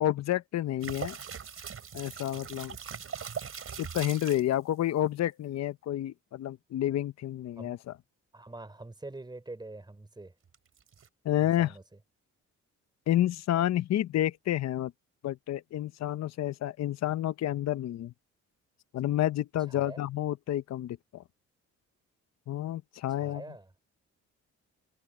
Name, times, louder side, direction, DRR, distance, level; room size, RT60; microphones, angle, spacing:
voice 1, 0.0-1.2 1.9-2.8 3.8-7.9 11.2-11.7 13.1-14.9 15.2-18.1 18.9-21.2 22.5-23.4, left 13 dB, 60° left, 0.7 m, -30 dB
sound 1, 0.8-4.5 10.5-11.1, right 7 dB, 45° right, 4.7 m, -40 dB
voice 2, 8.3-10.3 11.4-12.0 19.6-20.0 23.1-23.7, right 2 dB, 15° right, 3.6 m, -45 dB
cardioid pair, 90°, 30 cm